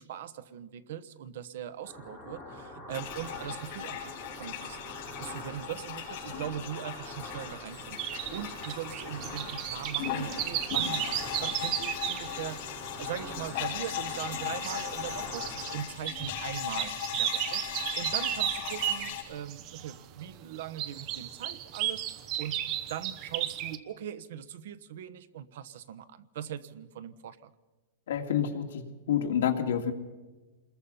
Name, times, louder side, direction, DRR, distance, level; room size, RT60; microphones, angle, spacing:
voice 1, 0.0-4.1 4.4-4.9 5.2-22.6 22.9-27.5, right 10 dB, 60° right, 14 dB, 1.1 m, -41 dB
sound 1, 1.8-15.8, left 1 dB, 10° right, 6.8 m, -45 dB
sound 2, 2.9-19.2, left 10 dB, 40° left, 5.9 m, -38 dB
sound 3, 7.7-23.8, right 12 dB, 30° right, 0.9 m, -35 dB
voice 2, 28.1-29.9, left 9 dB, 75° left, 3 dB, 2.5 m, -28 dB
27.0 x 21.5 x 5.6 m, 1.2 s
supercardioid pair, 175°, 0 cm